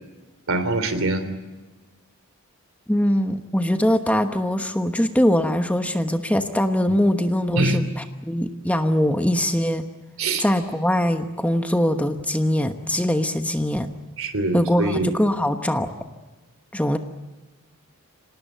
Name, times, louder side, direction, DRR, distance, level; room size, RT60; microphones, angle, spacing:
voice 1, 0.5-1.2 7.5-7.8 10.2-10.4 14.2-15.1, right 2 dB, 70° right, 10 dB, 3.1 m, -23 dB
voice 2, 2.9-9.9 10.4-13.9 14.5-15.9 16.7-17.0, equal, 5° left, 7 dB, 1.1 m, -22 dB
26.0 x 19.0 x 9.1 m, 1.3 s
head